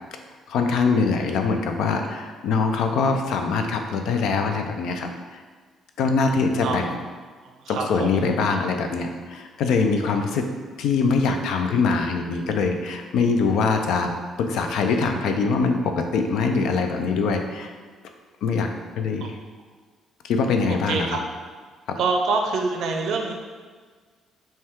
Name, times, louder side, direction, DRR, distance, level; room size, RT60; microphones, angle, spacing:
voice 1, 0.5-5.1 6.0-6.9 7.7-10.5 10.8-14.1 14.4-17.7 18.4-18.7 19.0-19.3 20.2-21.1, left 4 dB, 80° left, 5 dB, 0.4 m, -23 dB
voice 2, 7.4-8.3 19.2-19.4 20.7-21.2 22.0-23.3, right 4 dB, 65° right, 3 dB, 0.5 m, -26 dB
5.3 x 2.3 x 3.6 m, 1.5 s
cardioid pair, 125°, 0 cm